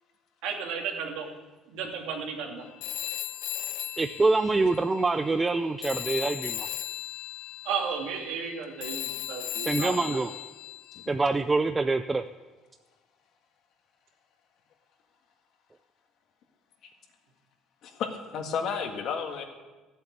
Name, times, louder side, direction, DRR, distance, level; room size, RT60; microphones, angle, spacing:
voice 1, 0.4-1.3 1.7-2.6 7.6-10.2, right 6 dB, 80° right, 2 dB, 2.5 m, -33 dB
Telephone, 2.8-5.6 5.8-11.1, left 13 dB, 90° left, 1.2 m, -37 dB
voice 2, 4.0-6.7 9.6-10.3 11.1-12.2, right 3 dB, 10° right, 9 dB, 0.3 m, -25 dB
voice 3, 17.8-19.4, left 6 dB, 50° left, 4 dB, 1.7 m, -32 dB
14.0 x 7.9 x 8.7 m, 1.2 s
cardioid pair, 175°, 0 cm